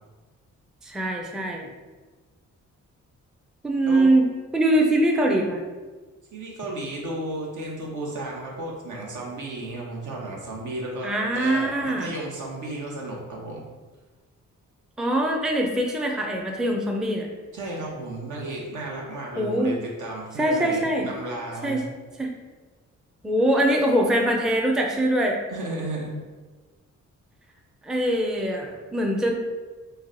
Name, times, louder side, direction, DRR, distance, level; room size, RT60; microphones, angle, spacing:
voice 1, 0.8-1.7 3.6-5.6 11.0-12.1 15.0-17.3 19.4-19.8 20.4-21.1 21.6-21.8 22.2-22.3 23.2-25.4 27.8-29.3, right 1 dB, ahead, 1 dB, 0.4 m, -23 dB
voice 2, 6.3-13.6 17.5-21.9 25.5-26.2, right 2 dB, 70° right, -2 dB, 0.9 m, -33 dB
3.1 x 2.1 x 3.8 m, 1.3 s
cardioid pair, 60°, 32 cm